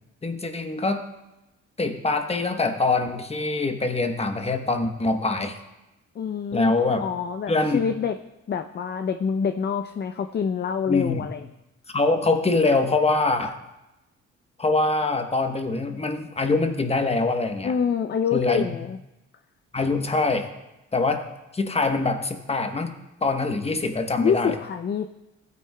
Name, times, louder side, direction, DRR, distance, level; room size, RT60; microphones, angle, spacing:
voice 1, 0.2-1.0 1.8-5.6 6.5-7.1 7.5-7.8 10.9-11.3 11.9-13.6 14.6-17.7 18.3-18.8 19.7-20.5 20.9-21.3 21.5-22.9 23.2-24.5, left 3 dB, 20° left, 6 dB, 1.1 m, -24 dB
voice 2, 6.2-6.7 7.0-8.2 8.5-11.4 17.6-19.0 24.2-25.1, left 7 dB, 35° left, 8 dB, 0.5 m, -26 dB
15.5 x 9.3 x 2.2 m, 0.96 s
cardioid pair, 90°, 30 cm